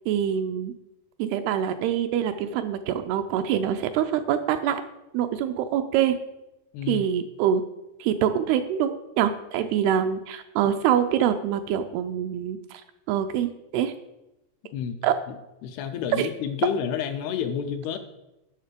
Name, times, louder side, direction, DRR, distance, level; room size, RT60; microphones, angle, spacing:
voice 1, 0.1-0.7 1.2-4.8 5.1-6.2 6.9-7.6 8.0-12.8 13.1-13.9 15.0-15.1 16.2-16.3, right 9 dB, 80° right, 8 dB, 2.4 m, -25 dB
voice 2, 6.7-7.1 14.7-15.0 15.3-15.4 15.6-18.0, left 8 dB, 80° left, 7 dB, 2.5 m, -29 dB
9.5 x 6.4 x 5.1 m, 0.91 s
omnidirectional pair, 4.8 m